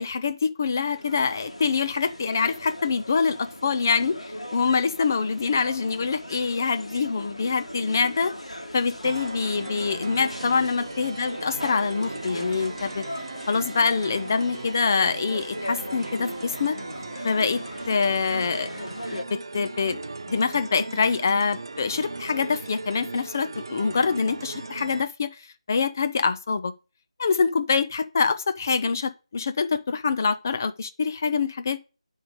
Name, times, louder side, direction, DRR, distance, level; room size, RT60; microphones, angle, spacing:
voice 1, 0.0-4.2 4.5-8.3 8.7-13.0 13.5-16.8 17.2-18.7 19.1-20.0 20.3-25.4 25.7-26.7 27.2-31.8, left 5 dB, 30° left, 0.6 m, -25 dB
sound 1, 0.6-19.2, equal, 75° left, 1.8 m, -39 dB
sound 2, 9.0-25.0, right 3 dB, 45° right, 0.6 m, -38 dB
11.0 x 3.6 x 5.1 m
figure-of-eight pair, 160°, 3 cm